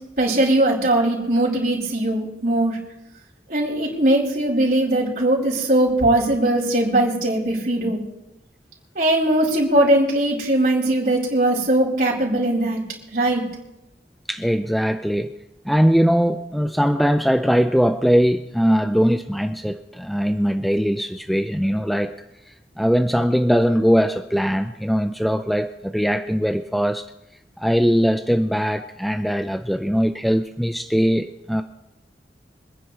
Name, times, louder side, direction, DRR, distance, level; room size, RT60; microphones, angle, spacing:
voice 1, 0.2-2.8 3.5-8.0 8.9-12.8 13.1-13.4, right 1 dB, 55° right, 4.5 m, -20 dB
voice 2, 14.3-15.3 15.7-22.1 22.5-27.1 27.6-31.6, equal, ahead, 0.4 m, -20 dB
26.0 x 10.0 x 3.3 m
head